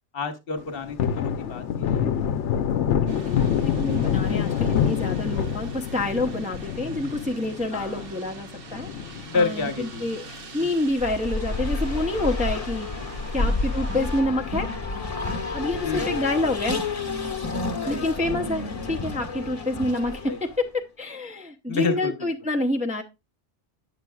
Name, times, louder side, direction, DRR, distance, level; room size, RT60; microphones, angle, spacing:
voice 1, 0.1-2.1 6.0-6.2 7.7-8.1 9.3-10.4 13.4-13.5 15.8-16.2 17.8-18.2 19.7-20.0 20.3-20.4 21.7-22.3, left 4 dB, 55° left, 9 dB, 1.3 m, -30 dB
Thunder, 0.6-11.3 11.7-11.8 12.1-13.6 13.9-14.1 14.4-15.2 15.6-15.7 16.1-16.2 18.5-19.1, left 8 dB, 80° left, 0.9 m, -27 dB
sound 1, 3.1-14.2, right 5 dB, 55° right, 1.1 m, -45 dB
voice 2, 3.3-10.2 10.5-12.9 13.3-14.7 15.5-16.8 17.9-23.0, left 1 dB, 10° right, 2 dB, 0.6 m, -28 dB
Race car auto racing, 10.9-20.6, left 3 dB, 35° left, 1.1 m, -30 dB
9.4 x 6.8 x 2.3 m, 0.25 s
omnidirectional pair, 1.2 m